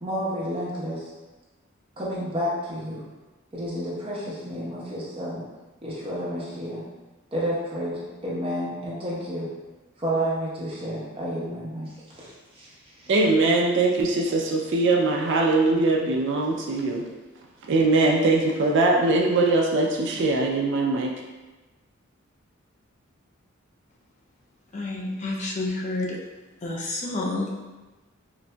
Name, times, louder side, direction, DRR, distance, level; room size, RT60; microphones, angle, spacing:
voice 1, 0.0-1.1 2.0-3.0 3.5-5.4 5.8-6.8 7.3-9.5 10.0-11.9 12.2-12.7 13.0-13.1, equal, 25° right, -7 dB, 0.9 m, -30 dB
voice 2, 13.1-17.0 17.7-21.1, right 2 dB, 60° right, 0 dB, 0.4 m, -21 dB
voice 3, 24.7-26.2 26.6-27.7, left 2 dB, 35° left, -1 dB, 0.4 m, -29 dB
3.9 x 2.5 x 2.2 m, 1.2 s
head